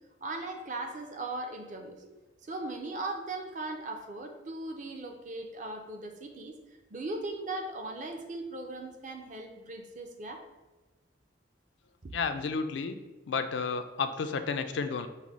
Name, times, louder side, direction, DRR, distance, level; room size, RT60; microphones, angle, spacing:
voice 1, 0.2-6.6 6.9-10.4 12.0-12.1, right 2 dB, 40° right, 3 dB, 0.5 m, -38 dB
voice 2, 12.1-13.0 13.3-15.1, left 5 dB, 65° left, 9 dB, 0.4 m, -31 dB
5.5 x 2.1 x 4.7 m, 1.2 s
head